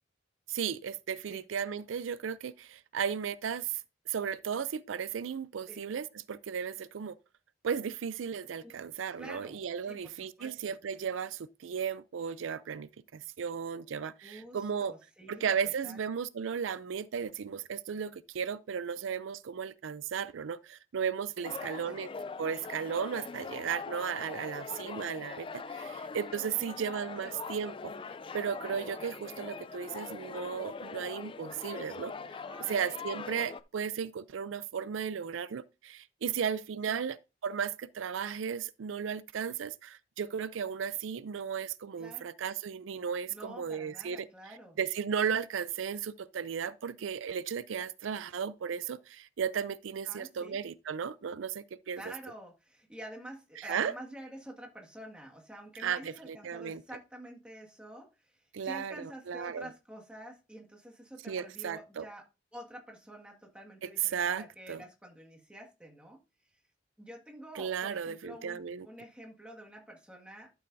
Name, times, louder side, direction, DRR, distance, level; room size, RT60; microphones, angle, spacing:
voice 1, 0.5-7.2 7.6-15.0 15.3-22.1 22.4-27.9 28.3-32.1 32.7-37.2 37.4-52.1 53.6-53.9 55.8-56.8 58.5-59.7 61.3-62.1 63.8-64.8 67.5-68.9, right 7 dB, 85° right, 0.4 m, -35 dB
voice 2, 9.2-9.6 9.9-10.7 14.2-15.5 15.8-16.1 21.6-22.0 26.6-26.9 27.2-27.3 32.4-32.8 36.9-37.0 42.0-42.3 43.3-44.8 50.1-50.6 52.0-62.3 62.5-66.2 67.0-70.5, right 1 dB, 5° right, 1.7 m, -48 dB
sound 1, 21.4-33.6, left 4 dB, 25° left, 0.4 m, -42 dB
11.5 x 7.0 x 2.6 m
head